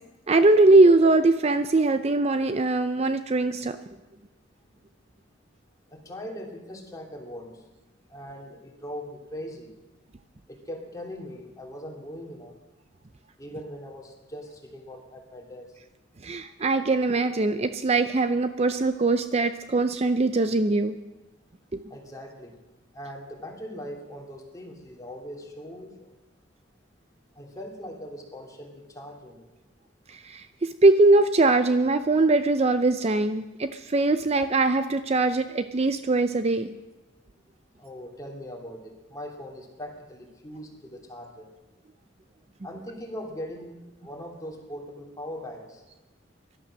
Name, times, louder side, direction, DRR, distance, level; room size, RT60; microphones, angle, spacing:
voice 1, 0.3-3.8 16.2-21.0 21.7-21.8 30.2-36.7, right 2 dB, 35° right, 10 dB, 0.5 m, -21 dB
voice 2, 5.9-7.5 8.1-9.7 10.5-12.5 13.4-15.7 21.9-22.5 22.9-26.1 27.4-29.4 37.8-41.5 42.6-45.8, equal, 20° left, 0 dB, 2.9 m, -40 dB
17.0 x 12.0 x 6.4 m, 1.1 s
head